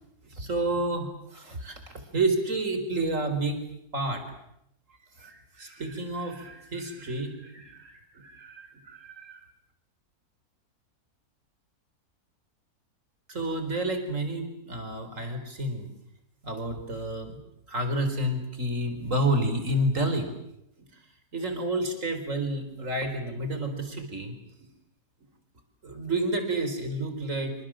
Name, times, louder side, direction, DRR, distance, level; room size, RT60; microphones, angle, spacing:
voice 1, 0.3-3.6 3.9-4.3 5.2-9.4 13.3-15.9 16.4-17.4 17.7-20.3 21.3-24.3 25.8-27.5, right 1 dB, 55° right, 7 dB, 4.8 m, -30 dB
27.0 x 26.0 x 7.7 m, 0.79 s
omnidirectional pair, 1.6 m